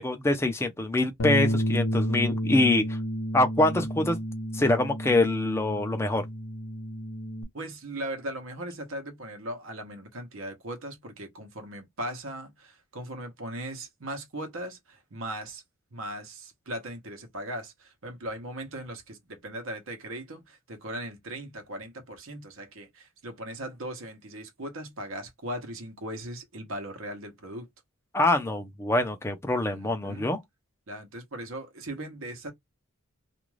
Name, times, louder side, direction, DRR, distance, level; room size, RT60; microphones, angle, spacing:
voice 1, 0.0-3.0 3.3-4.2 4.5-6.2 28.1-30.4, left 2 dB, 10° left, 0.5 m, -25 dB
Bass guitar, 1.2-7.4, equal, 80° left, 0.7 m, -31 dB
voice 2, 7.5-15.6 15.9-27.7 29.7-30.3 30.9-32.5, right 1 dB, 65° right, 0.9 m, -38 dB
2.5 x 2.3 x 3.1 m
head